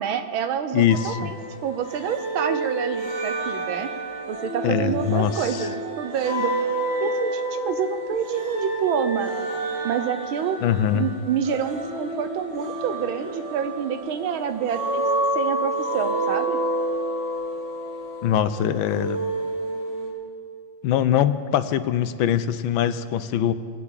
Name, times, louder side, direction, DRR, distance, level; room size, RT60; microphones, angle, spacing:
voice 1, 0.0-1.3 1.6-3.9 4.3-6.5 7.0-9.3 9.8-10.6 10.9-15.1 15.3-16.6, right 8 dB, 85° right, 10 dB, 1.8 m, -27 dB
voice 2, 0.7-1.3 4.6-5.7 10.6-11.1 18.2-19.2 20.8-23.5, left 10 dB, 80° left, 12 dB, 1.4 m, -22 dB
sound 1, 0.9-20.1, right 1 dB, 65° right, 3.7 m, -29 dB
19.5 x 8.3 x 8.8 m, 2.1 s
omnidirectional pair, 2.2 m